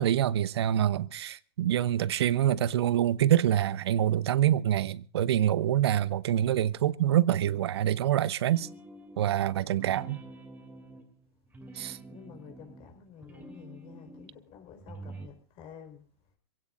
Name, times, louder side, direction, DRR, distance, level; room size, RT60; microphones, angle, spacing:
voice 1, 0.0-8.7 9.2-10.2 11.8-12.0, right 11 dB, 70° right, 0.7 m, -26 dB
sound 1, 8.5-9.3 9.7-14.4 14.8-15.3, right 2 dB, 10° right, 2.8 m, -48 dB
voice 2, 12.1-16.0, left 8 dB, 40° left, 4.6 m, -50 dB
26.5 x 16.5 x 2.6 m
hypercardioid pair, 120°, 14 cm